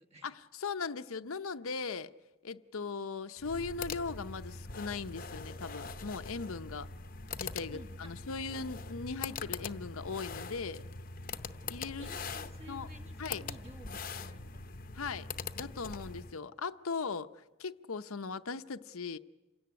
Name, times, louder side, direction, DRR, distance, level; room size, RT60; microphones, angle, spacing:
voice 1, 0.2-2.1 2.4-6.9 7.4-10.8 11.7-12.2 12.7-12.9 13.2-13.4 14.9-15.3 15.6-19.2, left 4 dB, 70° left, 0.7 m, -39 dB
sound 1, 3.4-16.4, left 4 dB, 40° left, 0.8 m, -42 dB
voice 2, 7.7-8.1 12.0-14.7, right 1 dB, 30° right, 1.6 m, -53 dB
28.0 x 17.0 x 9.5 m
head